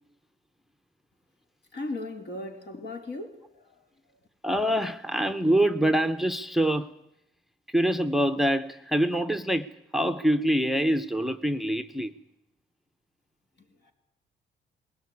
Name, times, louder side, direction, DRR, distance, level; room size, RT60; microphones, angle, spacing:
voice 1, 1.7-3.8 13.6-13.9, left 2 dB, 60° left, 4.4 m, -37 dB
voice 2, 4.4-6.9 7.7-12.1, right 1 dB, ahead, 0.8 m, -25 dB
20.0 x 17.5 x 9.8 m
cardioid pair, 90°, 20 cm